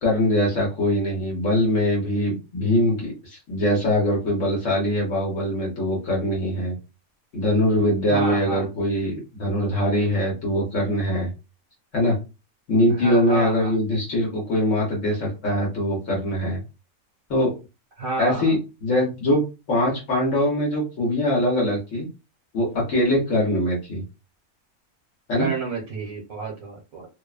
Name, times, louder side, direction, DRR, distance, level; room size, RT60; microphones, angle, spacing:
voice 1, 0.0-6.7 7.3-11.3 11.9-12.2 12.7-16.6 17.3-17.5 18.2-19.4 19.7-22.1 22.5-24.0 25.3-25.5, left 1 dB, 65° left, -3 dB, 1.2 m, -22 dB
voice 2, 8.1-8.6 13.0-13.7 18.0-18.5 25.4-27.1, right 3 dB, 70° right, -2 dB, 1.2 m, -29 dB
2.8 x 2.0 x 2.3 m, 0.28 s
omnidirectional pair, 1.5 m